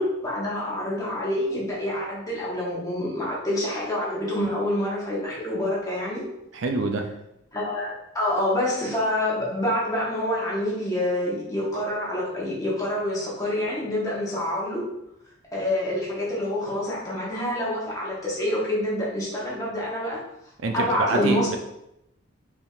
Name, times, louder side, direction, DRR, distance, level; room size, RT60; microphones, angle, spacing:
voice 1, 0.0-6.3 7.5-14.9 15.5-20.2 20.7-21.6, left 1 dB, 15° left, -6 dB, 1.2 m, -27 dB
voice 2, 6.5-7.1 20.6-21.6, right 3 dB, 65° right, 4 dB, 0.4 m, -26 dB
4.8 x 3.5 x 2.4 m, 0.83 s
head